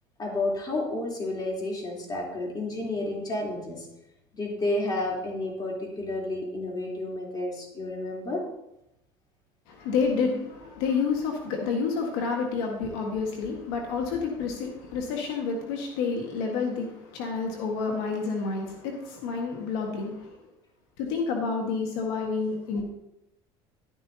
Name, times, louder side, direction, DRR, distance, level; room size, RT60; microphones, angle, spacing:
voice 1, 0.2-3.9 4.3-8.4, left 2 dB, 35° left, -2 dB, 3.4 m, -31 dB
voice 2, 9.7-20.3 21.0-22.8, left 5 dB, 90° left, 2 dB, 1.6 m, -29 dB
11.5 x 10.5 x 2.8 m, 0.86 s
cardioid pair, 115°, 12 cm